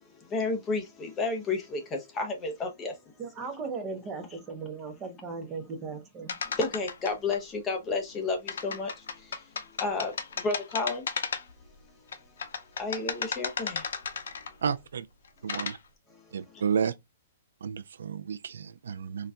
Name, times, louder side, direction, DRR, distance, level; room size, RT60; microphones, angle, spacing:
voice 1, 0.1-3.0 3.4-3.5 6.5-9.4 9.8-11.1 11.9-12.0 12.8-13.9 16.1-16.6, left 3 dB, 15° left, 0.6 m, -32 dB
voice 2, 3.2-6.4, right 4 dB, 20° right, 0.6 m, -37 dB
sound 1, 6.3-7.4 8.5-11.7 12.1-14.7 15.2-15.8, left 6 dB, 80° left, 0.5 m, -34 dB
voice 3, 14.6-15.1 15.4-15.8 16.3-16.9 17.6-19.3, right 7 dB, 85° right, 0.3 m, -31 dB
3.9 x 2.2 x 2.3 m
hypercardioid pair, 160°, 0 cm